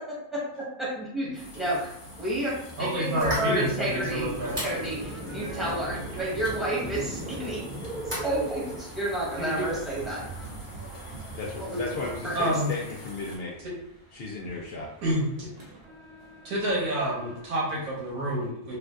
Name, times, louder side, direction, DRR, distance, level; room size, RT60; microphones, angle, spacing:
voice 1, 0.1-1.9 2.2-2.5 2.8-4.3 4.6-7.6 8.0-10.2 11.6-11.8 12.2-12.5, right 1 dB, ahead, -8 dB, 1.0 m, -31 dB
sound 1, 1.3-13.4, left 1 dB, 25° left, 0.8 m, -45 dB
voice 2, 2.8-4.6 9.4-9.6 12.3-12.7 15.0-15.5 16.4-18.8, right 1 dB, 85° right, -6 dB, 1.5 m, -28 dB
sound 2, 3.2-8.8, right 1 dB, 25° right, 0.9 m, -35 dB
sound 3, 4.3-18.1, right 3 dB, 50° right, 1.0 m, -46 dB
voice 3, 11.3-13.5 14.1-14.9, left 3 dB, 65° left, -3 dB, 0.6 m, -35 dB
3.3 x 2.4 x 2.4 m, 0.80 s
omnidirectional pair, 1.5 m